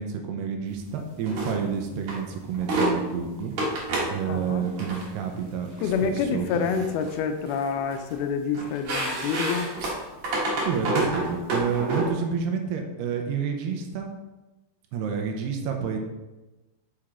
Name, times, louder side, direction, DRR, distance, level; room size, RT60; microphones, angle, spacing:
voice 1, 0.0-6.9 10.4-14.1 14.9-16.0, right 6 dB, 85° right, 3 dB, 2.9 m, -29 dB
sound 1, 1.2-1.6 2.1-2.2 2.5-2.9 3.6-4.1 4.7-5.0 5.8-6.0 6.5-7.2 7.5-8.1 8.5-12.1, right 2 dB, 60° right, 2.2 m, -28 dB
voice 2, 4.3-4.7 5.8-9.7, left 6 dB, 80° left, 6 dB, 2.4 m, -27 dB
6.6 x 5.9 x 3.7 m, 1.1 s
omnidirectional pair, 4.6 m